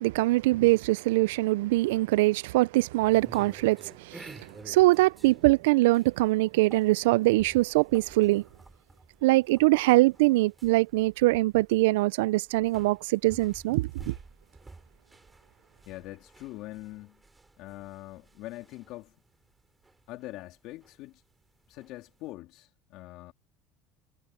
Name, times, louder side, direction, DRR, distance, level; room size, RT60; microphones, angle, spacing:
voice 1, 0.0-8.4 9.2-14.1, right 20 dB, 85° right, 0.3 m, -23 dB
sound 1, 3.1-22.3, right 3 dB, 15° right, 3.4 m, -52 dB
voice 2, 15.8-17.2 17.6-19.1 20.1-21.2 21.7-23.3, left 18 dB, 65° left, 3.3 m, -43 dB
supercardioid pair, 100°, 0 cm